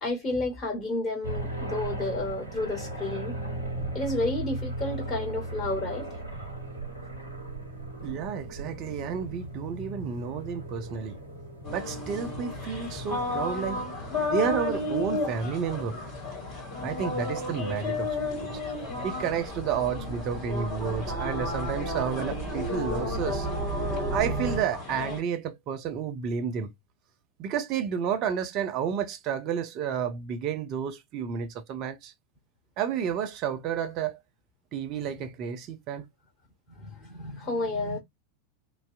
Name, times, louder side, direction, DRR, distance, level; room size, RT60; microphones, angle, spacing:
voice 1, 0.0-3.4 3.9-6.1 36.8-38.0, left 2 dB, 25° left, 1.5 m, -31 dB
sound 1, 1.2-19.8, right 1 dB, 80° left, 1.0 m, -38 dB
voice 2, 8.0-11.2 11.7-13.8 14.3-16.0 16.8-18.5 19.0-23.5 24.1-26.7 27.4-32.1 32.8-34.2 34.7-36.1, right 7 dB, 40° right, 0.5 m, -31 dB
sound 2, 11.6-25.2, left 3 dB, 45° left, 1.8 m, -33 dB
sound 3, 18.9-24.6, right 3 dB, 10° right, 1.1 m, -35 dB
2.6 x 2.1 x 2.5 m
figure-of-eight pair, 85°, 0 cm